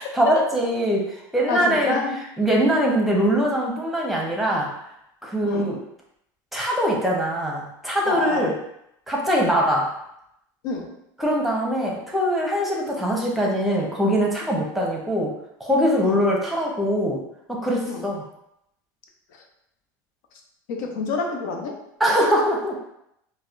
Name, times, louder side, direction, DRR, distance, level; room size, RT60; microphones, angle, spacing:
voice 1, 0.0-1.9 2.4-4.7 5.2-5.8 6.5-8.5 9.1-9.9 11.2-15.3 15.6-17.2 17.5-18.2 22.0-22.7, equal, ahead, -2 dB, 0.9 m, -22 dB
voice 2, 1.5-2.2 5.4-5.7 8.1-8.5 10.6-11.0 16.0-16.2 17.9-18.0 20.7-21.8, left 4 dB, 75° left, 2 dB, 0.6 m, -27 dB
4.1 x 2.3 x 2.5 m, 0.79 s
supercardioid pair, 100°, 10 cm